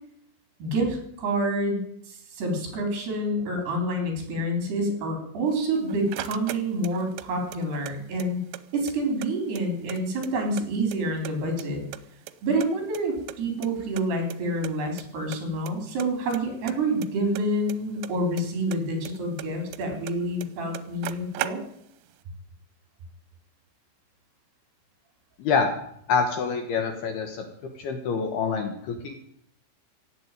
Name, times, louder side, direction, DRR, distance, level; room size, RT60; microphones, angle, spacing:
voice 1, 0.6-1.8 2.1-8.4 8.7-11.8 12.4-21.6, right 1 dB, 60° right, 4 dB, 5.7 m, -28 dB
sound 1, 5.5-7.3 7.5-8.6 8.9-9.0 9.2-10.6 10.9-11.7 11.9-13.4 13.6-13.7 14.0-14.1 14.3-14.4 14.6-15.0 15.3-15.7 16.0-18.4 18.7-20.1 20.4-20.5 20.7-22.0, right 15 dB, 85° right, 3.3 m, -37 dB
voice 2, 25.4-25.7 26.1-27.5 27.8-29.1, left 5 dB, 65° left, 6 dB, 2.8 m, -26 dB
16.5 x 8.0 x 9.1 m, 0.69 s
omnidirectional pair, 5.6 m